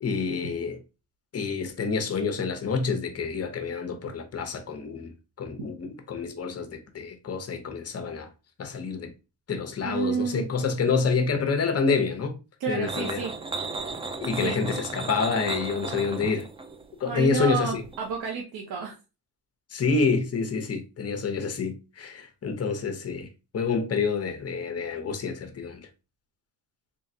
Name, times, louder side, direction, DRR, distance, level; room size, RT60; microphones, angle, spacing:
voice 1, 0.0-0.8 1.3-5.1 5.4-8.3 8.6-9.1 9.5-12.4 12.7-13.3 14.2-16.5 17.0-17.8 19.7-23.3 23.5-25.9, left 5 dB, 35° left, 0.8 m, -28 dB
voice 2, 9.8-10.5 12.6-13.3 14.4-14.6 17.0-18.9, right 5 dB, 65° right, 1.0 m, -30 dB
sound 1, 12.8-18.2, right 3 dB, 15° right, 0.3 m, -35 dB
3.6 x 3.4 x 2.7 m
cardioid pair, 115°, 41 cm